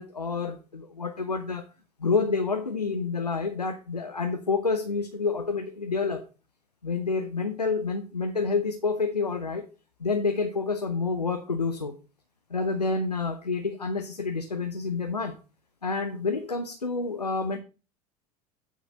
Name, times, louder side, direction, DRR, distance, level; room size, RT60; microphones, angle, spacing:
voice 1, 0.0-1.7 2.0-6.2 6.8-9.7 10.0-12.0 12.5-15.4 15.8-17.6, left 4 dB, 90° left, 0.7 m, -28 dB
9.3 x 4.0 x 6.0 m
figure-of-eight pair, 75°, 20 cm